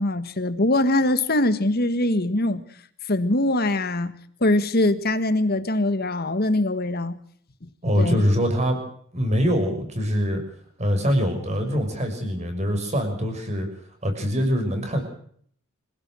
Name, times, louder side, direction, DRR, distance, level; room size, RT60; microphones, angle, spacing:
voice 1, 0.0-2.6 3.1-4.1 4.4-7.1 8.0-8.2, left 1 dB, 45° left, 1.6 m, -22 dB
voice 2, 7.8-8.8 9.1-10.4 10.8-13.7 14.0-15.0, equal, 30° right, 6.2 m, -23 dB
26.0 x 16.5 x 6.3 m
head